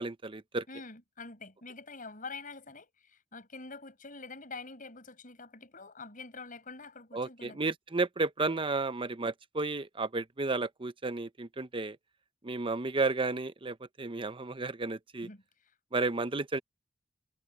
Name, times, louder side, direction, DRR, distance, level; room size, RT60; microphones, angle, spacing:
voice 1, 0.0-0.6 7.1-12.0 12.4-15.3 15.9-16.6, right 3 dB, 30° right, 0.8 m, -32 dB
voice 2, 0.7-7.6 15.2-15.7, left 3 dB, 45° left, 7.4 m, -46 dB
head